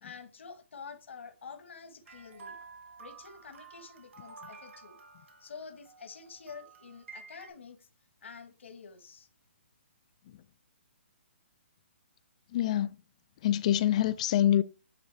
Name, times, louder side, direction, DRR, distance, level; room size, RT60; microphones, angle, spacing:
voice 1, 0.0-2.6 3.0-5.0 5.4-7.9 8.2-9.3, left 5 dB, 75° left, 1.3 m, -48 dB
sound 1, 2.1-7.5, right 4 dB, 80° right, 1.7 m, -51 dB
voice 2, 12.5-12.9 13.4-14.6, left 11 dB, 35° left, 0.4 m, -25 dB
9.2 x 3.4 x 3.3 m
hypercardioid pair, 160°, 7 cm